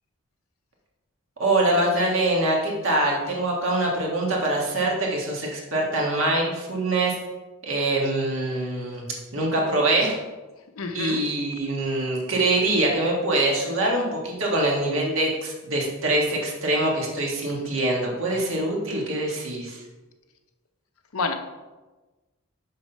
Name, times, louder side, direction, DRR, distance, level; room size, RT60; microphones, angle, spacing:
voice 1, 1.4-7.1 7.6-9.1 9.3-10.2 10.9-19.8, right 2 dB, 65° right, -2 dB, 1.7 m, -24 dB
voice 2, 10.8-11.3 21.1-21.3, left 4 dB, 80° left, 7 dB, 0.7 m, -28 dB
6.2 x 4.3 x 5.5 m, 1.2 s
head